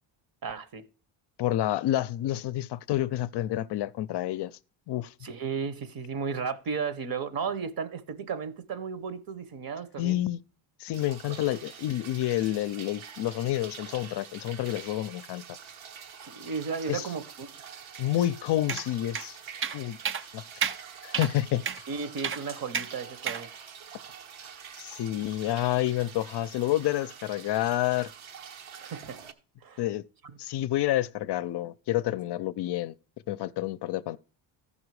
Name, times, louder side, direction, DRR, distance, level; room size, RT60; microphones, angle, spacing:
voice 1, 0.4-0.9 5.2-10.2 16.2-17.5 21.9-23.5 28.8-29.2 29.6-29.8, right 5 dB, 45° right, 1.0 m, -34 dB
voice 2, 1.4-4.5 4.9-5.3 10.0-10.4 10.8-15.4 16.9-17.1 18.0-19.4 19.7-20.0 20.3-20.4 21.0-21.6 24.8-28.1 29.8-30.0 30.4-32.9 33.3-34.2, left 14 dB, 60° left, 0.5 m, -29 dB
sound 1, 10.9-29.3, right 7 dB, 75° right, 1.2 m, -46 dB
sound 2, 18.7-18.8 19.1-19.3 19.6-19.8 20.0-20.2 20.6-20.8 21.1-21.3 21.6-21.8 22.2-22.4 22.7-22.9 23.3-23.4, right 7 dB, 30° right, 0.4 m, -30 dB
14.0 x 5.6 x 4.7 m
cardioid pair, 115°, 47 cm